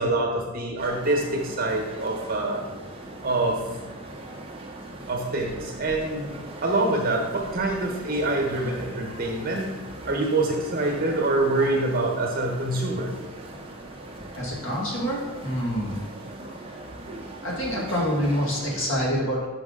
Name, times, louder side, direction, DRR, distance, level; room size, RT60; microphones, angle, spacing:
voice 1, 0.0-2.6 3.2-3.6 5.1-6.3 6.6-9.8 10.0-13.1, right 2 dB, 45° right, 1 dB, 1.2 m, -25 dB
sound 1, 0.8-18.9, right 1 dB, 25° right, 0.8 m, -40 dB
voice 2, 14.4-16.0 17.4-19.5, equal, 60° left, -4 dB, 1.8 m, -26 dB
6.1 x 5.1 x 3.8 m, 1.2 s
head